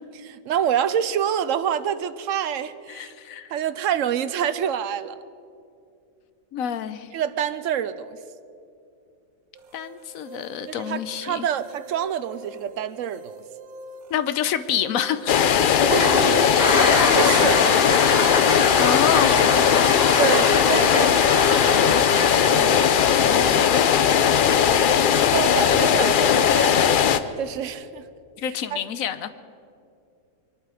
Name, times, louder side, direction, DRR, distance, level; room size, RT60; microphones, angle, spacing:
voice 1, 0.2-3.1 3.5-5.2 7.1-8.2 10.7-13.4 15.9-17.8 20.2-21.6 22.4-22.9 25.3-26.8 27.4-28.1 28.7-28.8, right 9 dB, 70° right, 14 dB, 0.9 m, -27 dB
voice 2, 2.9-3.5 6.5-7.1 9.7-11.5 14.1-15.5 16.8-17.9 18.8-19.8 21.5-22.0 23.2-23.8 25.9-26.6 28.4-29.3, left 9 dB, 75° left, 12 dB, 1.1 m, -29 dB
sound 1, 9.5-25.2, right 2 dB, 85° right, 1.4 m, -45 dB
sound 2, 15.3-27.2, left 8 dB, 60° left, 0.5 m, -18 dB
Toilet flush, 15.8-24.6, left 2 dB, 45° left, 1.9 m, -26 dB
24.0 x 11.5 x 4.9 m, 2.5 s
omnidirectional pair, 1.5 m